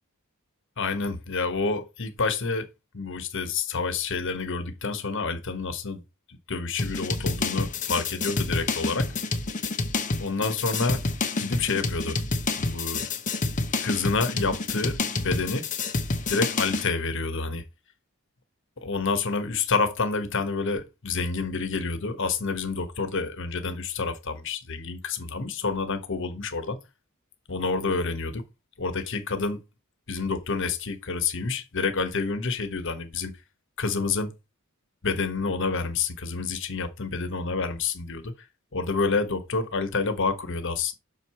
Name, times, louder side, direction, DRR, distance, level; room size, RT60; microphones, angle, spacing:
voice 1, 0.8-2.7 2.9-6.0 6.3-9.1 10.2-11.1 11.4-12.2 12.6-13.1 13.8-15.7 16.3-17.6 18.8-26.8 27.5-28.4 28.8-29.6 30.1-33.4 33.8-34.3 35.0-38.3 38.7-40.9, left 4 dB, 60° left, 1.2 m, -28 dB
sound 1, 6.8-16.9, left 3 dB, 35° left, 0.9 m, -28 dB
6.4 x 4.7 x 4.2 m
head